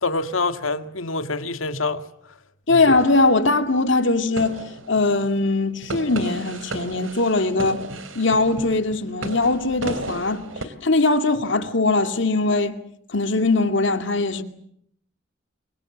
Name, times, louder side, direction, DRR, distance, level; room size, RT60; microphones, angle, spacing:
voice 1, 0.0-2.0 2.7-2.8, left 3 dB, 85° left, 2.0 m, -26 dB
voice 2, 2.7-4.6 4.9-7.8 8.1-10.4 10.8-12.8 13.1-14.4, left 3 dB, 65° left, 2.4 m, -20 dB
sound 1, 2.9-3.8 4.4-5.4 5.8-10.6, right 2 dB, 80° right, 3.2 m, -35 dB
28.5 x 23.5 x 7.4 m
head